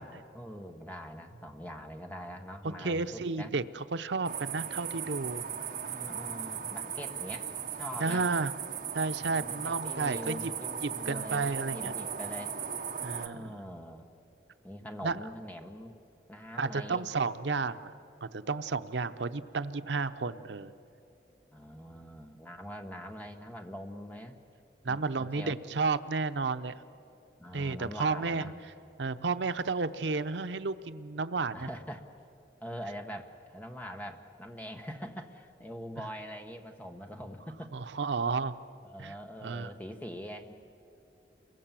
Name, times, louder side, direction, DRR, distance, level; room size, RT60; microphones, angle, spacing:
voice 1, 0.0-3.5 5.8-8.3 9.4-12.5 13.2-14.1 14.6-15.9 16.3-17.0 21.5-24.4 24.9-25.5 27.4-28.5 31.5-32.0 32.6-37.8 38.8-40.5, equal, 10° left, 4 dB, 1.3 m, -43 dB
voice 2, 2.6-5.4 8.0-8.5 8.9-10.5 10.8-11.9 13.0-13.6 15.0-15.2 16.6-17.9 18.2-20.7 24.8-26.7 27.5-28.5 29.0-31.7 36.0-36.1 37.7-38.5 39.0-39.1 39.4-39.7, right 4 dB, 85° right, 11 dB, 0.7 m, -32 dB
sound 1, 4.3-13.3, right 7 dB, 50° right, 1.2 m, -37 dB
29.0 x 23.0 x 7.5 m, 2.7 s
head